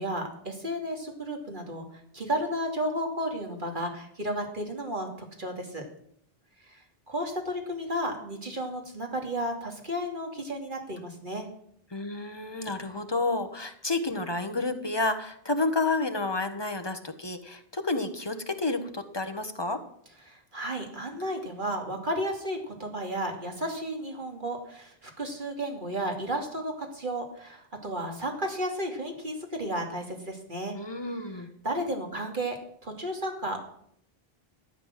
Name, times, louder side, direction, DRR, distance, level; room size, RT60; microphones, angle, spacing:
voice 1, 0.0-1.8 2.1-5.9 6.7-11.5 20.3-30.8 31.6-32.6 32.8-33.6, equal, 55° right, 2 dB, 2.9 m, -33 dB
voice 2, 11.9-19.8 30.7-31.5, left 3 dB, 25° left, 8 dB, 1.3 m, -30 dB
13.5 x 8.9 x 7.6 m, 0.68 s
omnidirectional pair, 1.0 m